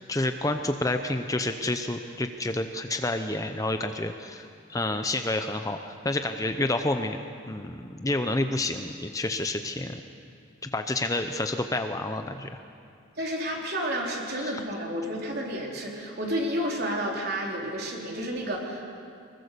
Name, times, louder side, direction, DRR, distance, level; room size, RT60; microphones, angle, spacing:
voice 1, 0.1-7.2 7.5-10.0 10.7-12.6 14.4-14.6, left 2 dB, 15° left, 6 dB, 0.7 m, -29 dB
voice 2, 13.2-18.8, equal, 50° right, -1 dB, 3.8 m, -31 dB
24.0 x 21.5 x 6.8 m, 2.4 s
head